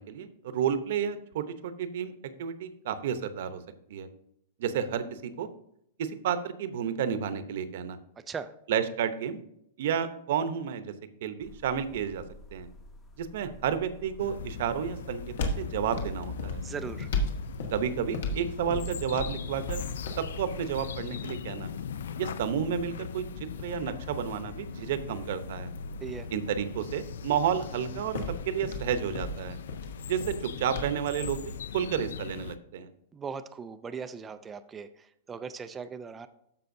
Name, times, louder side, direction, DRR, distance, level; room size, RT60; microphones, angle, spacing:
voice 1, 0.0-2.1 2.4-3.6 3.9-4.1 4.6-5.5 6.0-8.0 8.7-9.4 9.8-10.9 11.2-12.2 12.5-12.7 13.2-16.6 17.7-19.8 20.2-21.7 22.2-23.2 23.6-25.7 26.3-28.2 28.5-29.6 30.1-32.9, right 8 dB, 50° right, 11 dB, 0.8 m, -31 dB
sound 1, 11.4-21.2, left 1 dB, 15° left, 0.8 m, -47 dB
sound 2, 14.2-32.6, left 7 dB, 85° left, 0.5 m, -40 dB
sound 3, 14.5-31.5, left 2 dB, 65° left, 1.6 m, -39 dB
voice 2, 16.6-17.1 26.0-26.3 33.1-36.3, right 6 dB, 10° right, 10 dB, 0.3 m, -39 dB
13.5 x 5.5 x 2.7 m, 0.76 s
supercardioid pair, 175°, 0 cm